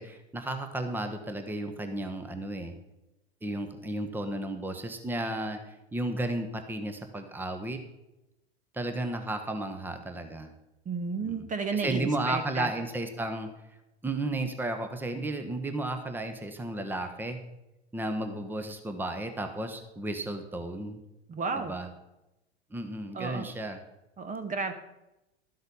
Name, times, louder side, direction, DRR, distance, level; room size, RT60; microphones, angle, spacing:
voice 1, 0.0-2.7 3.4-7.8 8.7-10.5 11.2-13.5 14.0-17.4 17.9-21.0 21.6-21.9 22.7-23.8, right 1 dB, 5° right, 7 dB, 1.1 m, -33 dB
voice 2, 10.8-12.7 21.3-21.8 23.1-23.5 24.2-24.7, right 4 dB, 25° right, 8 dB, 1.1 m, -32 dB
12.5 x 7.9 x 5.5 m, 0.94 s
figure-of-eight pair, 85°, 33 cm